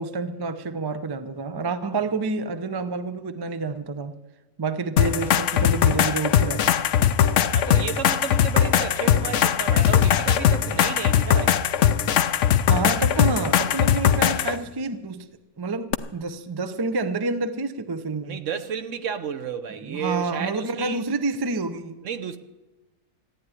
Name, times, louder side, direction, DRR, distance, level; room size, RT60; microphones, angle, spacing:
voice 1, 0.0-4.2 4.6-6.8 12.7-15.3 15.6-18.4 19.8-22.0, right 3 dB, 35° right, 0.4 m, -28 dB
sound 1, 5.0-14.6 15.9-16.0, left 9 dB, 60° left, 0.9 m, -20 dB
voice 2, 7.5-11.6 18.2-21.0 22.0-22.4, right 7 dB, 60° right, 1.1 m, -32 dB
14.5 x 9.7 x 9.7 m
omnidirectional pair, 1.6 m